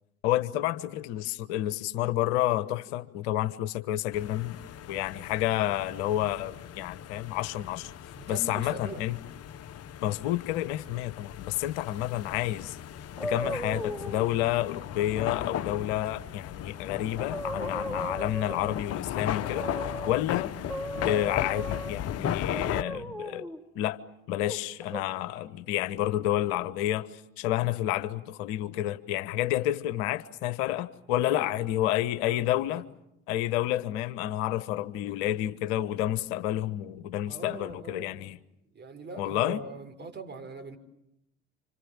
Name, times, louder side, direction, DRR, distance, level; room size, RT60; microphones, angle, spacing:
voice 1, 0.2-4.6 4.9-7.9 8.3-9.2 10.0-12.8 13.2-20.5 21.0-23.5 23.7-24.0 24.3-32.8 33.3-38.4 39.2-39.6, left 14 dB, 65° left, 13 dB, 1.3 m, -30 dB
sound 1, 4.1-22.8, left 10 dB, 45° left, 1.2 m, -36 dB
voice 2, 8.2-9.0 31.2-31.5 32.2-32.8 37.3-38.2 38.7-40.8, right 3 dB, 30° right, 5 dB, 5.7 m, -42 dB
sound 2, 13.2-14.3 16.7-16.8 17.2-18.9 19.4-20.2 20.7-22.0 22.5-23.6 24.4-25.0, equal, ahead, 4.7 m, -36 dB
29.5 x 26.5 x 7.4 m, 0.83 s
hypercardioid pair, 65°, 34 cm